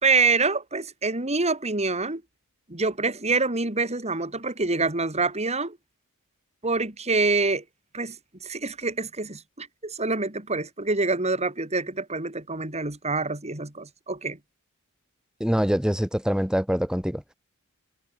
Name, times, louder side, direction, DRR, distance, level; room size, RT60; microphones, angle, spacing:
voice 1, 0.0-2.2 2.7-5.8 6.6-7.6 7.9-8.2 8.4-14.4, right 3 dB, 30° right, 4.0 m, -26 dB
voice 2, 15.4-17.2, equal, 5° right, 2.6 m, -24 dB
head